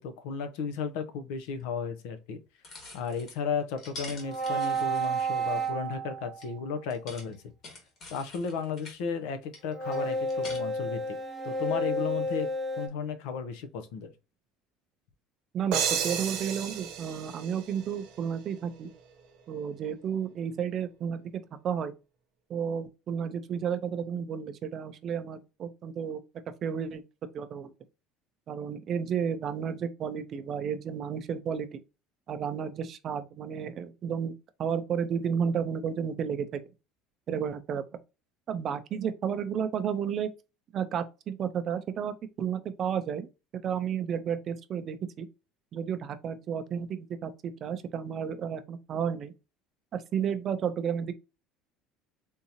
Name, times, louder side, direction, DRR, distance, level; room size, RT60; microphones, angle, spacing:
voice 1, 0.0-2.4 2.9-7.4 8.1-11.2 11.4-12.5 12.8-14.1, left 6 dB, 75° left, 0.6 m, -34 dB
sound 1, 1.6-1.7 2.6-3.4 3.8-5.7 6.4-6.5 6.9-9.0 9.5-10.6, left 2 dB, 35° left, 1.3 m, -46 dB
sound 2, 4.2-6.4 9.7-12.9, right 2 dB, 15° left, 0.7 m, -31 dB
voice 2, 15.5-18.9 19.5-21.9 22.5-26.2 26.6-27.0 27.3-27.7 28.5-31.8 32.3-34.3 34.6-36.6 37.3-37.8 38.5-40.3 40.7-43.3 43.5-45.3 45.7-49.3 49.9-51.1, right 7 dB, 30° right, 0.4 m, -32 dB
sound 3, 15.7-18.4, right 7 dB, 55° right, 0.8 m, -32 dB
3.6 x 2.7 x 2.8 m
cardioid pair, 175°, 0 cm